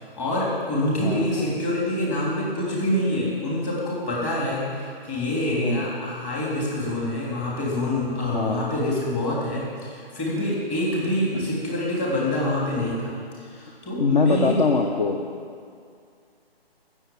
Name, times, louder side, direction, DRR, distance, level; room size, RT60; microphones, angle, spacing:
voice 1, 0.0-14.5, left 1 dB, 20° left, -5 dB, 3.3 m, -26 dB
voice 2, 1.0-1.3 5.5-5.9 8.2-8.6 11.3-11.5 14.0-15.3, left 4 dB, 50° left, 2 dB, 1.0 m, -23 dB
14.0 x 7.2 x 8.8 m, 2.3 s
figure-of-eight pair, 140°, 31 cm